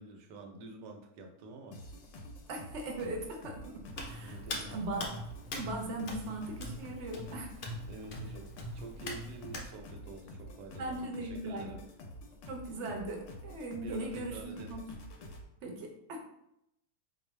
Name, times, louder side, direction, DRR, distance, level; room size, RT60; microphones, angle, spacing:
voice 1, 0.0-1.8 4.2-4.8 7.9-11.8 13.8-14.8, right 3 dB, 80° right, 3 dB, 1.3 m, -48 dB
sound 1, 1.7-15.4, equal, 65° left, 0.8 m, -48 dB
voice 2, 2.5-5.0 5.5-7.6 10.8-11.7 12.5-14.8 15.6-16.2, right 2 dB, 55° right, 1 dB, 0.9 m, -39 dB
Hands, 3.9-9.7, left 1 dB, 80° left, 0.4 m, -42 dB
4.3 x 2.6 x 3.1 m, 0.80 s
omnidirectional pair, 1.8 m